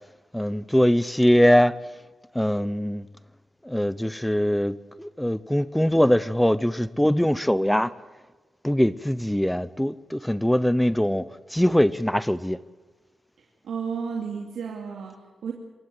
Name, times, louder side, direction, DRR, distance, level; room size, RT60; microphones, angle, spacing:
voice 1, 0.3-1.8 2.3-3.1 3.6-7.9 8.6-12.6, equal, 5° left, 0.7 m, -22 dB
voice 2, 13.4-15.5, right 6 dB, 85° right, 2.5 m, -33 dB
26.5 x 15.5 x 7.8 m
cardioid pair, 85°, 0 cm